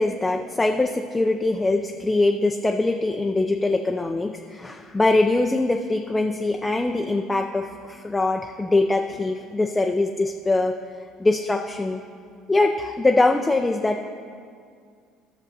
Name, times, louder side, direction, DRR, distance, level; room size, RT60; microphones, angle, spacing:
voice 1, 0.0-10.8 11.2-12.0 12.5-14.0, left 2 dB, 15° left, 4 dB, 0.5 m, -22 dB
13.0 x 6.3 x 4.1 m, 2.2 s
hypercardioid pair, 70°, 0 cm